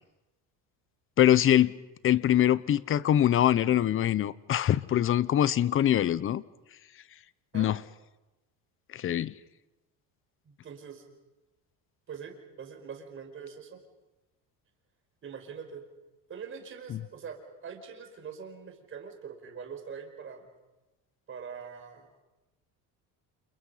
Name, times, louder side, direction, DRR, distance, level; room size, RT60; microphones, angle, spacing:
voice 1, 1.2-1.7 2.0-6.4 7.5-7.8 8.9-9.3 16.9-17.0, left 11 dB, 35° left, 0.8 m, -23 dB
voice 2, 10.4-11.0 12.1-13.8 15.2-15.8 16.3-20.5 21.3-22.1, right 6 dB, 35° right, 5.0 m, -43 dB
29.5 x 28.5 x 5.7 m
cardioid pair, 135°, 36 cm